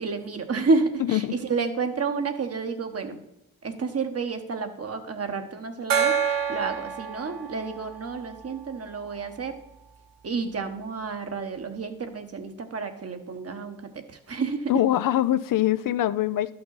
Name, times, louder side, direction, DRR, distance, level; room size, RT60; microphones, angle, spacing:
voice 1, 0.0-3.2 3.6-9.6 10.2-14.8, right 4 dB, 45° right, 7 dB, 1.2 m, -30 dB
Gong, 5.9-9.2, right 7 dB, 85° right, 0.8 m, -28 dB
voice 2, 14.7-16.5, left 13 dB, 70° left, 14 dB, 0.5 m, -23 dB
11.5 x 5.9 x 4.0 m, 0.92 s
cardioid pair, 55°, 34 cm